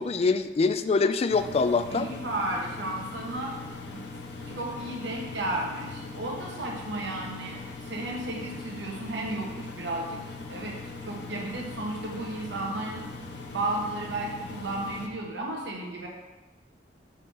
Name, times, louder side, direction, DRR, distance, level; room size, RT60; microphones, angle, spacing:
voice 1, 0.0-2.1, left 4 dB, 35° left, 11 dB, 0.3 m, -24 dB
Engine, 1.3-15.1, left 3 dB, 65° left, 1.0 m, -41 dB
voice 2, 1.9-3.5 3.8-4.0 4.6-10.2 10.5-10.8 11.0-13.0 13.5-16.1, right 2 dB, 80° right, -2 dB, 1.3 m, -33 dB
6.1 x 4.5 x 5.5 m, 1.1 s
head